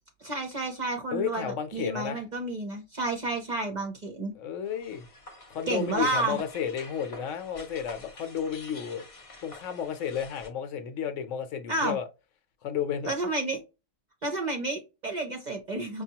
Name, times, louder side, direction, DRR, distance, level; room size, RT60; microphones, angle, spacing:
voice 1, 0.2-4.3 5.7-6.4 11.7-12.0 13.0-13.6 14.2-16.0, right 2 dB, 45° right, 0.7 m, -31 dB
voice 2, 1.1-2.2 4.3-5.1 5.5-9.0 9.4-12.1 12.6-13.1, left 8 dB, 70° left, 1.0 m, -32 dB
sound 1, 4.6-10.5, left 2 dB, 35° left, 0.6 m, -48 dB
5.2 x 2.3 x 2.8 m
omnidirectional pair, 1.4 m